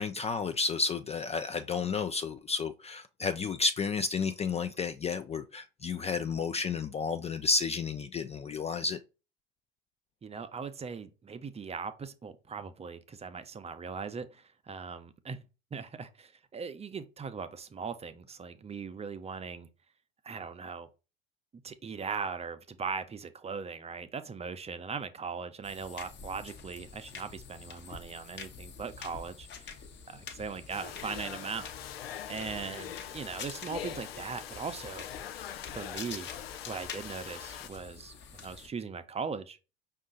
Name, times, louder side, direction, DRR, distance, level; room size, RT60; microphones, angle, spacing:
voice 1, 0.0-9.0, left 4 dB, 20° left, 0.4 m, -31 dB
voice 2, 10.2-15.4 15.7-19.7 20.2-20.9 21.6-29.8 30.1-31.7 32.3-35.1 35.7-36.3 36.7-39.6, right 5 dB, 20° right, 0.6 m, -39 dB
sound 1, 25.6-38.7, left 6 dB, 35° left, 1.0 m, -47 dB
Domestic sounds home sounds, 30.7-37.7, left 10 dB, 80° left, 0.5 m, -43 dB
5.3 x 2.5 x 3.8 m
hypercardioid pair, 65°, 30 cm